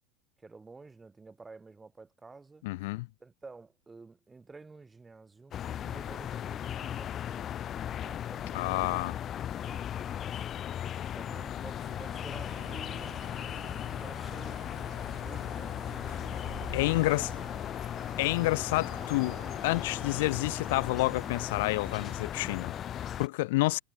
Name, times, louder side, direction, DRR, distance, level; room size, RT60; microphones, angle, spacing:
voice 1, 0.4-2.6 3.2-10.5 11.2-13.3 13.6-14.7 15.1-16.5 16.8-17.3, right 3 dB, 10° right, 4.2 m, -51 dB
voice 2, 2.6-3.1 8.5-9.1 16.7-17.3 18.2-23.8, left 21 dB, 75° left, 0.4 m, -29 dB
sound 1, 5.5-23.3, left 10 dB, 30° left, 0.8 m, -37 dB
Bird, 11.6-17.8, right 10 dB, 30° right, 7.4 m, -50 dB
sound 2, 12.5-22.2, right 17 dB, 85° right, 8.0 m, -54 dB
supercardioid pair, 140°, 0 cm